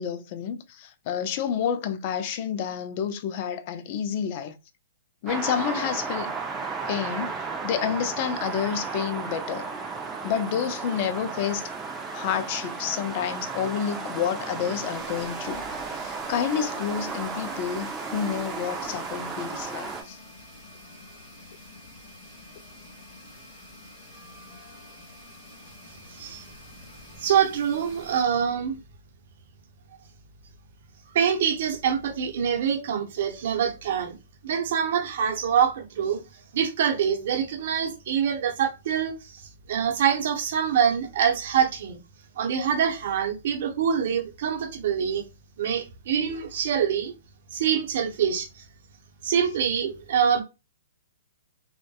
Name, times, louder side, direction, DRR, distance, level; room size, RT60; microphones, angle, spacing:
voice 1, 0.0-4.6 5.2-6.4 6.9-7.3 7.6-9.7 10.2-11.7 12.1-15.6 15.9-20.2, left 8 dB, 45° left, 0.4 m, -29 dB
sound 1, 5.3-20.0, right 4 dB, 15° right, 0.5 m, -34 dB
sound 2, 14.9-28.2, left 1 dB, 15° left, 1.3 m, -48 dB
voice 2, 26.1-26.4 27.2-28.8 31.1-34.2 34.4-36.2 36.5-42.0 42.4-45.2 45.6-47.1 47.5-48.6 49.2-50.4, right 8 dB, 55° right, 0.7 m, -25 dB
2.6 x 2.1 x 2.3 m
hypercardioid pair, 135°, 0 cm